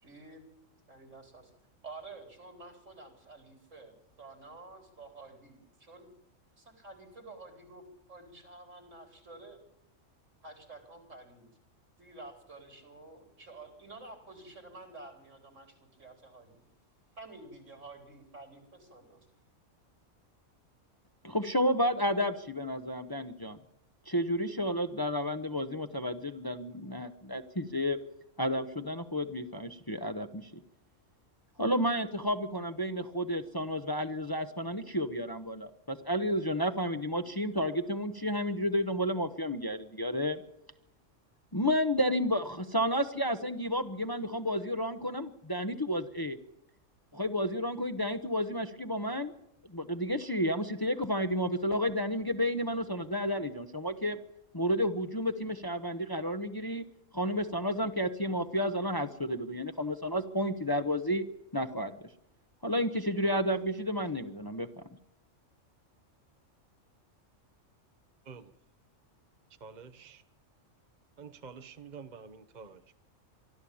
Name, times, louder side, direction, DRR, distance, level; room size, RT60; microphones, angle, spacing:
voice 1, 0.0-0.4 0.9-1.5 1.8-3.9 4.2-6.1 6.6-9.6 10.4-11.4 12.0-16.6 17.2-19.2, right 3 dB, 75° right, 5 dB, 4.6 m, -50 dB
voice 2, 21.2-23.6 24.1-28.0 28.4-30.6 31.6-40.4 41.5-46.4 47.1-49.3 49.7-54.2 54.5-56.8 57.1-61.2 61.5-62.1 62.6-64.7, equal, 20° left, 8 dB, 0.9 m, -31 dB
voice 3, 69.6-70.2 71.2-73.0, right 5 dB, 40° right, 10 dB, 1.0 m, -48 dB
24.0 x 13.5 x 8.6 m, 0.83 s
omnidirectional pair, 1.3 m